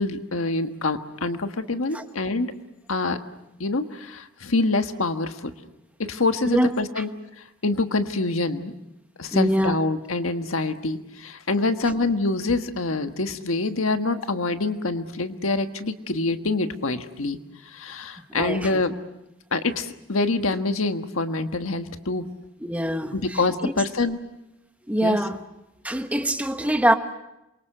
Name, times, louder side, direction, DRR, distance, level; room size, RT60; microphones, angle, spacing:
voice 1, 0.0-2.5 2.9-3.2 3.6-5.5 6.0-7.1 7.6-8.7 9.2-17.4 17.7-18.9 19.5-22.3 23.1-24.2 25.0-25.2, left 3 dB, 90° left, 1.5 m, -25 dB
voice 2, 9.3-9.8 18.4-18.8 22.6-23.7 24.9-25.4 25.8-26.9, equal, 5° right, 1.3 m, -24 dB
28.0 x 23.5 x 6.7 m
head